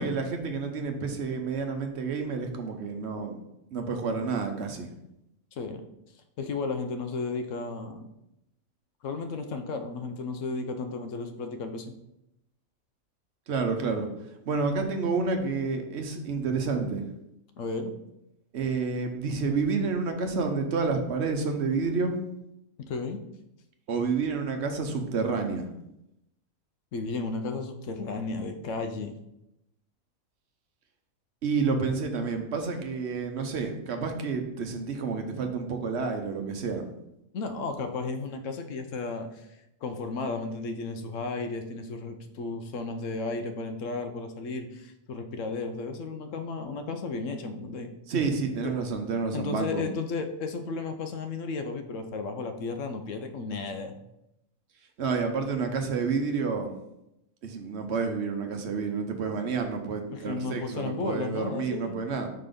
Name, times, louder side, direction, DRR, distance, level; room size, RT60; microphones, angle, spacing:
voice 1, 0.0-3.4 3.7-4.9 13.5-14.1 14.5-17.0 18.5-22.2 23.9-25.7 31.4-36.8 48.1-49.9 55.0-56.7 57.4-62.3, right 4 dB, 55° right, 4 dB, 1.0 m, -29 dB
voice 2, 5.5-5.8 6.4-8.1 9.0-11.9 17.6-17.9 22.8-23.2 26.9-29.1 37.3-39.5 39.8-47.9 48.6-48.7 49.3-54.0 60.1-62.0, left 3 dB, 70° left, 7 dB, 1.0 m, -34 dB
5.6 x 3.9 x 5.1 m, 0.85 s
omnidirectional pair, 1.4 m